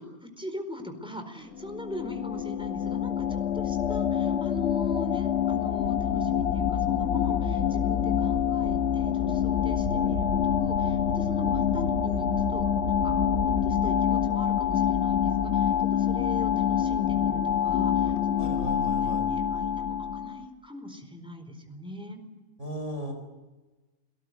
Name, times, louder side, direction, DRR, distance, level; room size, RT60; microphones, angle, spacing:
voice 1, 0.0-13.2 13.6-22.2, left 1 dB, 5° right, 5 dB, 4.4 m, -41 dB
sound 1, 1.5-20.5, left 9 dB, 50° left, 1.4 m, -26 dB
sound 2, 5.8-13.9, left 3 dB, 80° left, 3.0 m, -33 dB
voice 2, 18.4-19.2 22.6-23.1, right 1 dB, 55° right, 5 dB, 4.6 m, -36 dB
28.5 x 19.0 x 8.2 m, 1.2 s
omnidirectional pair, 1.5 m